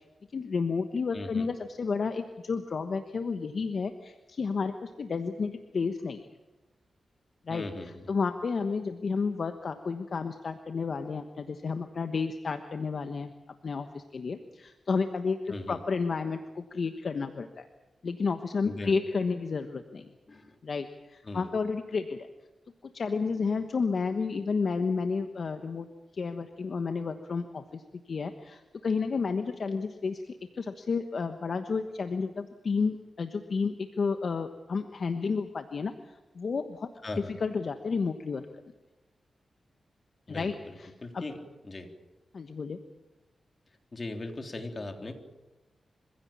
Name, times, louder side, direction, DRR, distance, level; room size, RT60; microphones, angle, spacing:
voice 1, 0.3-6.2 7.5-13.3 13.6-17.7 18.0-20.1 20.6-22.3 22.8-25.9 26.1-27.8 28.1-38.5 40.3-41.2 42.3-42.8, left 4 dB, 60° left, 7 dB, 1.2 m, -31 dB
voice 2, 1.1-1.5 7.5-8.1 15.5-15.8 18.6-19.0 20.3-20.5 21.2-21.5 37.0-37.3 40.3-41.4 41.6-41.9 43.9-45.1, left 2 dB, 40° left, 4 dB, 3.5 m, -39 dB
25.5 x 16.0 x 8.7 m, 1.1 s
cardioid pair, 70°, 0 cm